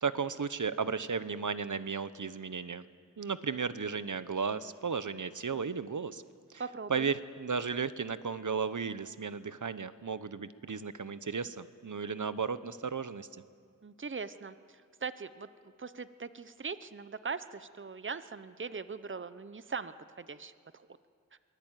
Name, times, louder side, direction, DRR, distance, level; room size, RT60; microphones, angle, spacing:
voice 1, 0.0-2.9 3.2-6.2 6.9-13.3, right 5 dB, 65° right, 14 dB, 0.9 m, -34 dB
voice 2, 6.6-7.1 13.8-15.5 15.8-20.9, right 5 dB, 35° right, 13 dB, 0.8 m, -41 dB
23.0 x 18.5 x 9.1 m, 2.1 s
wide cardioid pair, 60°, 33 cm